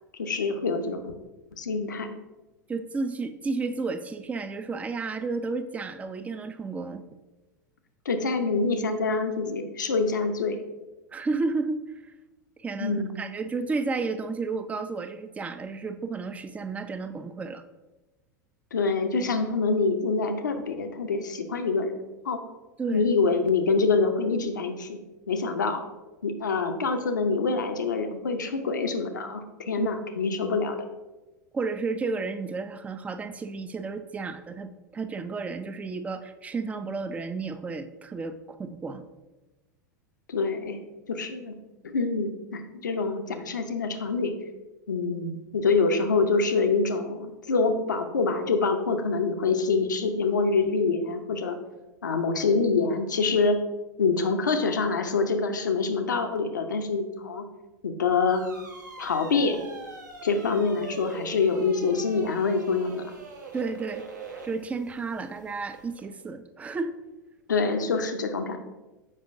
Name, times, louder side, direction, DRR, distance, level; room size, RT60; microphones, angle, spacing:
voice 1, 0.2-1.0 1.6-2.1 8.1-10.6 12.8-13.2 18.7-21.9 22.2-22.4 22.9-25.0 25.3-25.8 26.2-30.8 40.3-40.8 41.1-41.5 41.8-44.3 44.9-51.6 52.0-53.6 54.0-57.4 57.8-58.4 59.0-59.6 60.2-63.0 67.5-68.6, left 4 dB, 75° left, 7 dB, 0.6 m, -25 dB
voice 2, 2.7-7.0 11.1-11.8 12.6-17.6 22.8-23.0 29.8-29.9 31.5-39.1 63.5-64.1 64.5-67.0, right 4 dB, 15° right, 10 dB, 0.4 m, -32 dB
sound 1, 58.3-66.0, right 4 dB, 75° right, 1.0 m, -43 dB
7.5 x 5.0 x 2.5 m, 1.1 s
figure-of-eight pair, 90°, 10 cm